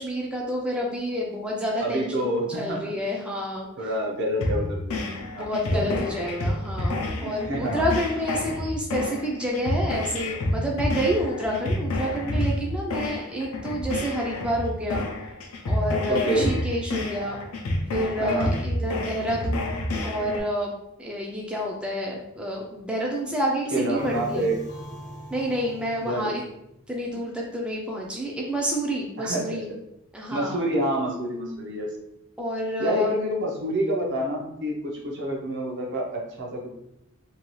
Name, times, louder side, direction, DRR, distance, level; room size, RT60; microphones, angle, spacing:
voice 1, 0.0-3.7 5.2-15.1 15.6-17.4 17.9-24.5 25.3-26.4 26.9-29.7 30.1-30.6 32.4-33.1, equal, 5° right, -2 dB, 0.3 m, -29 dB
voice 2, 1.8-2.8 3.8-6.1 7.2-7.9 16.1-16.5 18.2-18.5 23.7-24.6 26.0-26.3 29.2-29.8 30.3-31.9 32.8-36.7, right 1 dB, 55° right, 0 dB, 0.6 m, -28 dB
sound 1, 4.4-20.4, left 1 dB, 90° left, 0.5 m, -29 dB
sound 2, 23.9-27.1, equal, 35° left, 0.6 m, -41 dB
2.7 x 2.3 x 3.0 m, 0.84 s
head